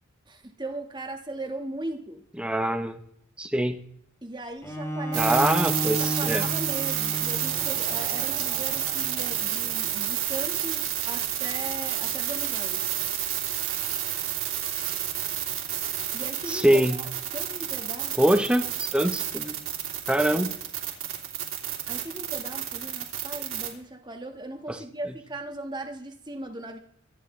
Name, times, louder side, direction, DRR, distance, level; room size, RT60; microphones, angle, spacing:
voice 1, 0.3-2.2 4.2-5.5 6.0-12.9 16.1-18.4 20.3-20.4 21.9-26.8, right 1 dB, 20° right, 4 dB, 1.7 m, -38 dB
voice 2, 2.4-3.0 3.4-3.8 5.1-6.5 16.5-17.0 18.2-19.6 20.1-20.5 24.7-24.8, right 1 dB, 5° right, 7 dB, 1.0 m, -24 dB
Bowed string instrument, 4.6-9.8, right 1 dB, 15° left, 1.5 m, -33 dB
sound 1, 5.1-23.7, right 11 dB, 75° right, 3.2 m, -30 dB
24.5 x 10.0 x 3.3 m, 0.69 s
head